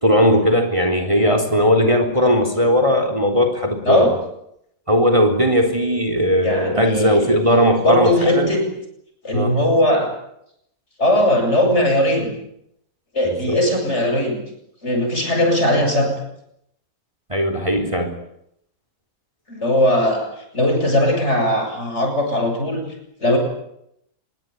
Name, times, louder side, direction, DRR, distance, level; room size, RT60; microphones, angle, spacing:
voice 1, 0.0-4.1 4.9-8.5 9.3-9.5 13.2-13.6 17.3-18.1, equal, 20° right, 6 dB, 4.0 m, -18 dB
voice 2, 6.4-7.3 7.8-8.6 9.2-10.1 11.0-12.3 13.1-14.4 14.8-16.1 19.5-20.3 20.5-22.8 23.2-23.4, left 1 dB, 45° left, 3 dB, 8.3 m, -19 dB
26.0 x 23.0 x 9.6 m, 0.77 s
omnidirectional pair, 1.6 m